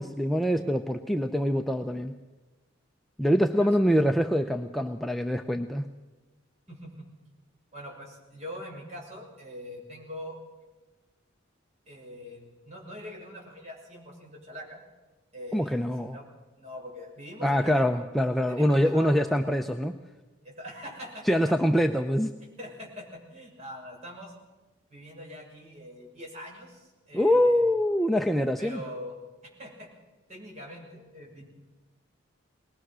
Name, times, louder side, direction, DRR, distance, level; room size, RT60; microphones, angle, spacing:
voice 1, 0.0-2.1 3.2-5.9 15.5-16.2 17.4-20.0 21.3-22.3 27.1-28.8, equal, ahead, 4 dB, 0.6 m, -24 dB
voice 2, 6.7-7.1 7.7-10.4 11.9-14.8 15.3-16.2 16.6-17.9 18.5-19.3 20.4-21.4 22.6-24.3 24.9-27.6 28.6-29.2 29.6-29.9 30.3-31.4, left 1 dB, 35° right, -2 dB, 6.7 m, -43 dB
23.0 x 19.5 x 6.2 m, 1.2 s
head